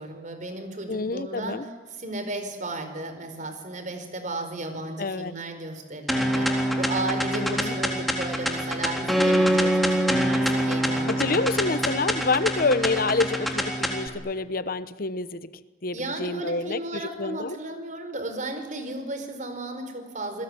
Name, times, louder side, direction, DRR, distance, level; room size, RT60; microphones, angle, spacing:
voice 1, 0.0-1.6 1.9-11.8 15.9-20.4, right 2 dB, 45° right, 8 dB, 4.8 m, -34 dB
voice 2, 0.9-1.6 5.0-5.3 7.3-7.8 11.1-15.5 15.8-17.6, left 3 dB, 55° left, 14 dB, 1.0 m, -27 dB
sound 1, 6.1-14.1, equal, ahead, 3.7 m, -25 dB
28.5 x 20.5 x 9.9 m, 1.3 s
head